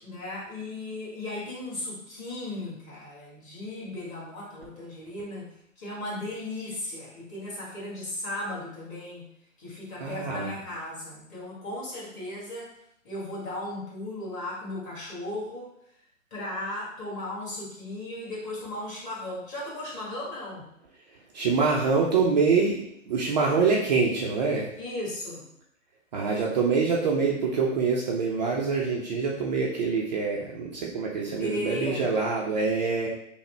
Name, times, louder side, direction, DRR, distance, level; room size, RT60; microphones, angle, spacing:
voice 1, 0.0-5.5 5.8-9.2 9.6-12.7 13.0-15.7 16.3-20.7 24.8-25.5 31.2-32.1, left 1 dB, 20° left, -6 dB, 1.5 m, -36 dB
voice 2, 10.0-10.6 21.3-22.8 23.1-24.7 26.1-33.1, right 4 dB, 35° right, -2 dB, 0.5 m, -25 dB
5.6 x 2.1 x 3.2 m, 0.74 s
hypercardioid pair, 135°, 40 cm